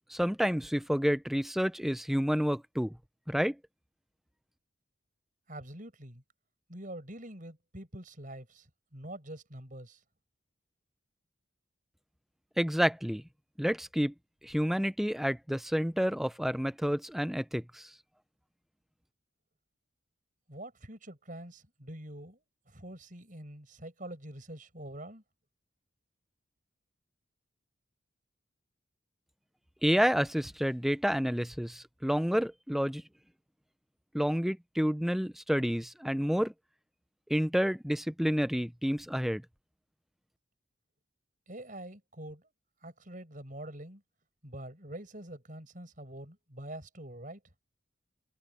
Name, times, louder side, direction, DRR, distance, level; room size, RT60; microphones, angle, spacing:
voice 1, 0.1-3.0 3.3-3.6 12.6-13.2 13.6-14.1 14.4-17.9 29.8-33.0 34.1-36.5 37.3-39.4, equal, ahead, 0.5 m, -29 dB
voice 2, 5.5-6.2 6.7-10.0 20.5-25.2 41.5-42.5 42.8-44.0 44.4-47.4, right 1 dB, 40° right, 5.8 m, -45 dB
head